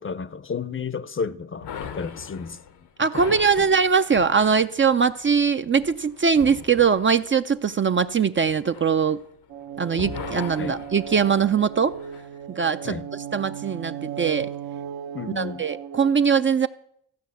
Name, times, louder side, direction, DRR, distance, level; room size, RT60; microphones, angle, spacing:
voice 1, 0.0-2.6 3.1-3.6 10.6-10.8 12.8-13.1 15.1-15.6, left 5 dB, 30° left, 0.6 m, -32 dB
sound 1, 1.6-9.6 9.9-12.3, left 7 dB, 80° left, 1.1 m, -41 dB
voice 2, 3.0-9.2 9.8-11.9 12.6-12.9 13.3-14.5 15.4-16.7, right 6 dB, 30° right, 0.5 m, -21 dB
sound 2, 9.5-16.1, right 8 dB, 60° right, 0.8 m, -36 dB
14.5 x 5.6 x 8.3 m
supercardioid pair, 60°, 40 cm